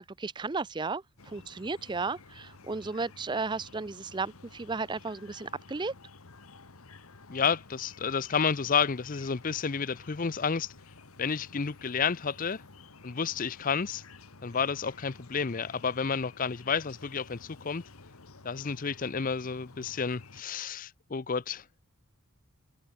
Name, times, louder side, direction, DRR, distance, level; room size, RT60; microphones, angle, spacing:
voice 1, 0.0-5.9, right 4 dB, 20° right, 0.5 m, -34 dB
sound 1, 1.2-20.4, left 3 dB, 85° left, 1.7 m, -52 dB
voice 2, 7.3-10.7 11.2-12.6 13.0-14.0 14.4-17.8 18.4-21.6, left 6 dB, 40° left, 0.6 m, -30 dB
head